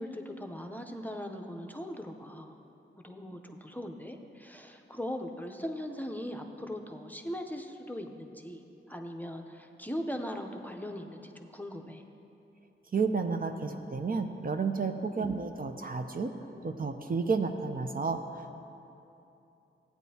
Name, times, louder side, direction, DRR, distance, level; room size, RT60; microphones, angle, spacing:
voice 1, 0.0-2.6 3.0-12.0 15.1-15.3, equal, 10° left, 3 dB, 0.6 m, -40 dB
voice 2, 12.9-16.3 16.6-18.5, right 4 dB, 45° right, 5 dB, 0.5 m, -31 dB
14.5 x 9.2 x 2.8 m, 2.8 s
wide cardioid pair, 70°, 21 cm